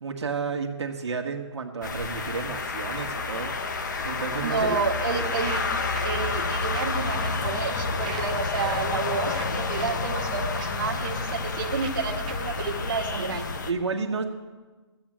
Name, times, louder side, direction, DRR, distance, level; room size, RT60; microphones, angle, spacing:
voice 1, 0.0-4.8 13.2-13.3 13.5-14.3, right 4 dB, 70° right, 2 dB, 1.4 m, -31 dB
sound 1, 1.8-13.7, left 3 dB, 40° left, 0.8 m, -29 dB
voice 2, 4.4-5.7 6.0-13.4, right 5 dB, 40° right, -1 dB, 1.4 m, -30 dB
Walk footsteps, 5.3-12.6, right 6 dB, 15° right, 0.4 m, -44 dB
13.5 x 7.9 x 7.5 m, 1.3 s
hypercardioid pair, 175°, 15 cm